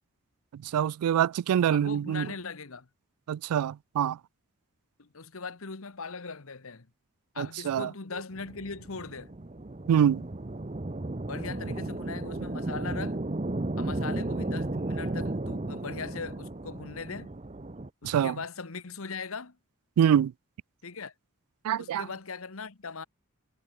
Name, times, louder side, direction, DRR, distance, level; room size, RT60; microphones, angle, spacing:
voice 1, 0.5-2.3 3.3-4.2 7.4-7.9 9.9-10.2 18.0-18.4 20.0-20.3 21.6-22.1, right 9 dB, 90° right, 0.3 m, -25 dB
voice 2, 1.7-2.9 5.0-6.9 7.3-9.3 11.3-13.2 13.8-17.3 18.0-19.6 20.8-21.1 21.8-23.0, left 4 dB, 75° left, 1.2 m, -39 dB
sound 1, 8.4-17.9, right 2 dB, 30° right, 0.7 m, -34 dB
head